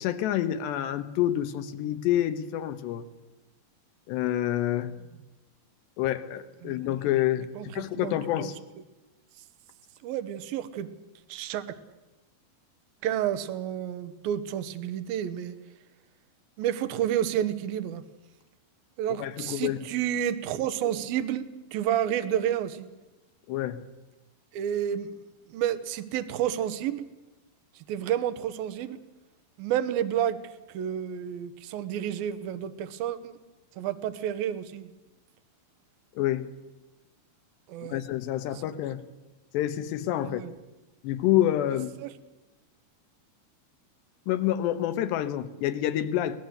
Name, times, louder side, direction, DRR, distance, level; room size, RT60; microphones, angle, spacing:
voice 1, 0.0-3.0 4.1-4.9 6.0-8.6 19.2-19.8 23.5-23.8 36.2-36.5 37.9-39.0 39.5-40.4 41.0-41.9 44.3-46.4, left 12 dB, 80° left, 3.3 m, -28 dB
voice 2, 6.6-6.9 7.6-8.5 10.0-10.9 11.3-11.8 13.0-15.6 16.6-18.0 19.0-22.9 24.5-25.1 25.5-27.1 27.9-29.0 29.6-30.4 30.7-33.3 33.8-34.9 37.7-38.0 40.2-40.5 42.0-42.1, right 10 dB, 70° right, 2.7 m, -30 dB
23.5 x 19.0 x 8.0 m
omnidirectional pair, 5.0 m